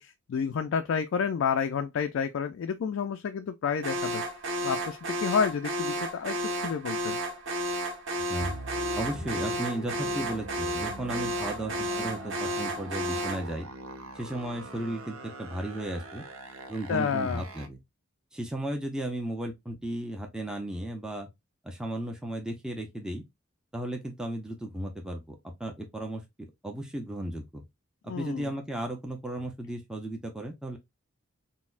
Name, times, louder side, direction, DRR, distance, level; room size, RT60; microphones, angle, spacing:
voice 1, 0.0-4.2 4.6-6.4 6.6-7.2 16.9-17.4 28.1-28.5, left 6 dB, 65° left, 0.3 m, -30 dB
Alarm, 3.8-13.5, right 1 dB, 60° right, 0.9 m, -32 dB
sound 1, 8.4-17.7, right 2 dB, 80° right, 0.6 m, -43 dB
voice 2, 8.9-13.7 14.2-16.3 16.7-17.8 18.3-21.3 21.6-23.2 23.7-27.6 28.0-30.8, right 1 dB, 5° right, 0.5 m, -35 dB
4.0 x 2.1 x 2.4 m
head